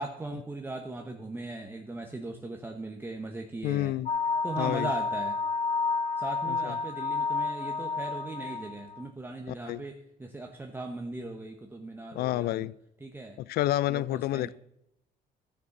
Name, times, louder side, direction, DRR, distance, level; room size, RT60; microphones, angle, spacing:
voice 1, 0.0-4.0 4.4-5.4 6.2-12.7 13.0-13.4 13.9-14.5, right 2 dB, 10° right, 1.0 m, -39 dB
voice 2, 3.6-4.1 4.6-4.9 6.5-6.8 9.5-9.8 12.1-12.7 13.4-14.5, left 15 dB, 65° left, 0.4 m, -29 dB
sound 1, 4.1-9.0, left 4 dB, 40° left, 1.0 m, -30 dB
12.0 x 6.6 x 7.1 m
cardioid pair, 110°, 17 cm